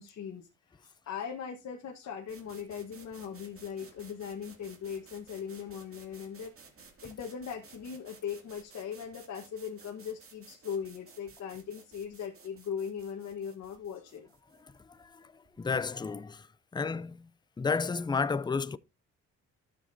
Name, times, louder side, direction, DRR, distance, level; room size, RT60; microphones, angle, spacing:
voice 1, 0.0-6.5 7.0-14.3, left 7 dB, 65° left, 1.5 m, -39 dB
sound 1, 2.3-16.0, right 4 dB, 45° right, 2.6 m, -56 dB
voice 2, 15.6-16.5 16.7-17.3 17.6-18.8, left 5 dB, 15° left, 0.5 m, -31 dB
12.5 x 7.5 x 2.8 m
cardioid pair, 90°, 30 cm